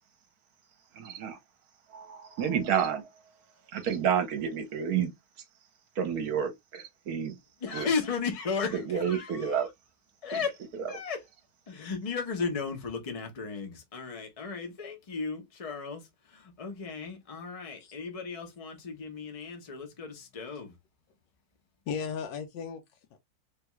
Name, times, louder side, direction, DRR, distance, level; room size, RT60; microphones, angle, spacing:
voice 1, 0.9-1.4 1.9-3.1 3.7-5.1 6.0-7.4 7.7-7.9 8.7-9.7 10.3-10.4 10.8-10.9, right 8 dB, 65° right, 1.2 m, -30 dB
voice 2, 7.6-9.7 10.2-10.6 10.9-11.2 11.7-20.7, left 5 dB, 40° left, 0.5 m, -35 dB
voice 3, 21.9-23.2, left 6 dB, 85° left, 1.3 m, -36 dB
3.3 x 2.3 x 2.9 m
omnidirectional pair, 1.9 m